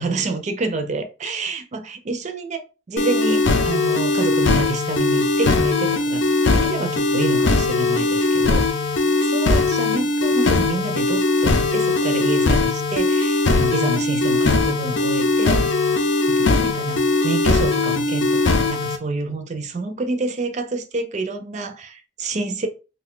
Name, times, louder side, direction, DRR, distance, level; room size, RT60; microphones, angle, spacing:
voice 1, 0.0-6.2 6.5-8.9 9.2-15.9 16.3-22.7, right 3 dB, 40° right, 0.4 m, -28 dB
sound 1, 3.0-19.0, left 3 dB, 75° left, 0.5 m, -20 dB
2.5 x 2.2 x 3.7 m
head